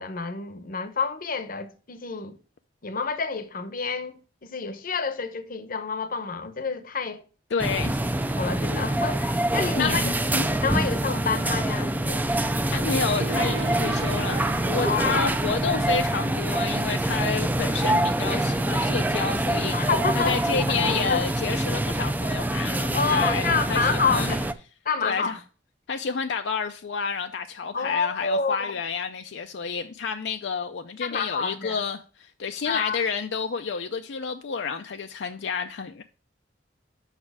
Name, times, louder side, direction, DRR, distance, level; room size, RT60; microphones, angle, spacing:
voice 1, 0.0-2.4 2.8-7.2 8.3-10.1 10.6-12.3 14.8-15.2 19.7-20.4 20.8-21.3 22.9-24.5 24.8-25.4 27.7-28.7 31.0-31.8 32.7-33.0, left 5 dB, 50° left, 0.8 m, -28 dB
voice 2, 7.5-8.1 9.8-10.5 12.4-24.3 25.0-25.4 25.9-36.0, left 5 dB, 70° left, 0.5 m, -30 dB
sound 1, 7.6-24.5, right 1 dB, 10° right, 0.4 m, -25 dB
Gong, 13.2-20.6, right 4 dB, 80° right, 0.7 m, -40 dB
6.5 x 6.0 x 4.7 m
head